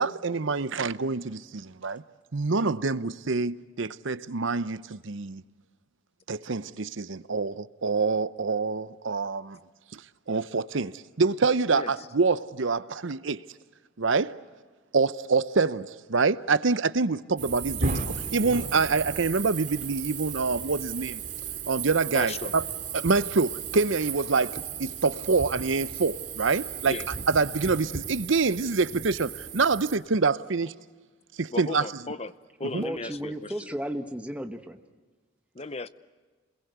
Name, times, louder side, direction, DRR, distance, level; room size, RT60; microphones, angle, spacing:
voice 1, 0.0-2.0 2.3-5.4 6.3-9.6 9.9-10.0 10.3-13.4 14.0-14.4 14.9-18.0 18.3-21.2 21.7-22.6 22.9-27.0 27.3-30.7 31.4-31.8 32.7-32.8, right 4 dB, 70° right, 0.8 m, -26 dB
voice 2, 11.7-12.1 22.1-22.5 26.8-27.1 31.5-32.3 32.6-33.3 35.5-35.9, left 3 dB, 30° left, 0.7 m, -35 dB
sound 1, 17.4-30.0, right 6 dB, 40° right, 2.8 m, -35 dB
voice 3, 32.8-34.8, equal, 5° right, 1.2 m, -34 dB
27.5 x 21.5 x 8.1 m
head